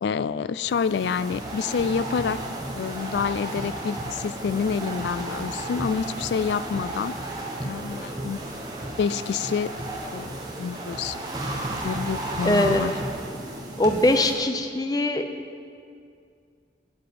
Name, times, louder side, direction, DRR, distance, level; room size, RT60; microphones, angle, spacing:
voice 1, 0.0-2.4 2.8-7.1 7.6-8.4 9.0-9.7 10.1-11.2 11.8-12.9, left 6 dB, 80° left, 16 dB, 0.3 m, -28 dB
sound 1, 0.6-14.3, right 1 dB, 20° right, 1.2 m, -33 dB
voice 2, 12.4-12.9 13.8-15.3, left 1 dB, 20° left, 6 dB, 0.6 m, -22 dB
8.8 x 7.8 x 8.5 m, 2.3 s
head